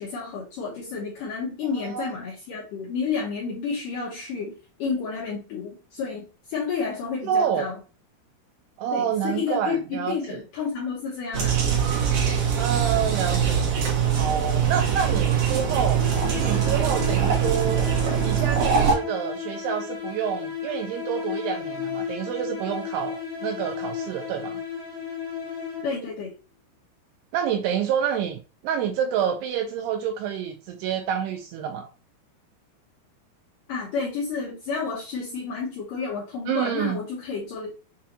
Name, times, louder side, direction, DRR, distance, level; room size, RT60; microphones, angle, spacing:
voice 1, 0.0-7.8 8.9-11.6 25.8-26.3 33.7-37.7, left 5 dB, 75° left, -4 dB, 2.0 m, -31 dB
voice 2, 7.2-7.7 8.8-10.2 12.6-13.7 14.2-16.0 16.4-17.8 18.2-24.6 27.3-28.4 28.6-31.9 36.5-37.0, right 8 dB, 85° right, 5 dB, 2.4 m, -28 dB
sound 1, 11.3-18.9, right 7 dB, 60° right, 2.1 m, -23 dB
sound 2, 16.0-26.2, left 6 dB, 50° left, 0.8 m, -34 dB
6.7 x 2.6 x 2.8 m, 0.33 s
omnidirectional pair, 5.1 m